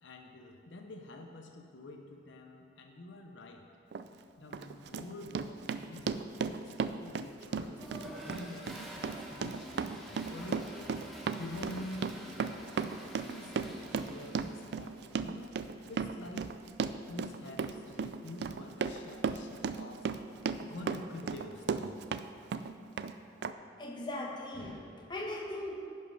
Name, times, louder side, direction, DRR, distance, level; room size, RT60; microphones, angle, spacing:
voice 1, 0.0-3.6 4.4-10.9 11.4-16.5 17.1-20.1 20.6-22.0, left 2 dB, 75° left, 3 dB, 0.7 m, -47 dB
Run, 3.9-4.1 4.5-22.2 22.5-23.1 23.4-23.5, right 5 dB, 60° right, 0.3 m, -35 dB
Toilet flush, 7.7-15.0, equal, ahead, 1.3 m, -47 dB
voice 2, 23.8-25.8, left 1 dB, 25° left, -1 dB, 1.1 m, -39 dB
10.5 x 5.5 x 5.5 m, 2.5 s
head